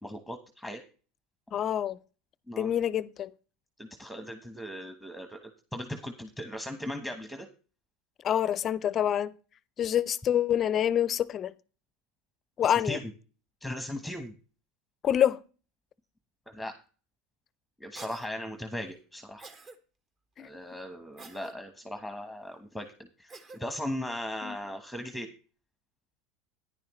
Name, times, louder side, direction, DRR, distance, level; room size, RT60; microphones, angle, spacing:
voice 1, 0.0-0.8 2.5-2.7 3.8-7.5 12.9-13.0 13.6-14.3 16.5-16.7 17.8-19.4 20.4-22.9 23.2-25.3, left 1 dB, ahead, 1.1 m, -38 dB
voice 2, 1.5-2.0 2.6-3.3 8.2-9.3 9.8-11.5 12.6-13.0 15.0-15.4 20.4-20.8 24.4-24.6, left 10 dB, 35° left, 0.5 m, -27 dB
Cough, 17.9-18.3 19.4-19.8 21.2-21.5 23.3-23.6, right 3 dB, 30° right, 1.3 m, -47 dB
10.5 x 10.0 x 3.1 m
supercardioid pair, 120°, 0 cm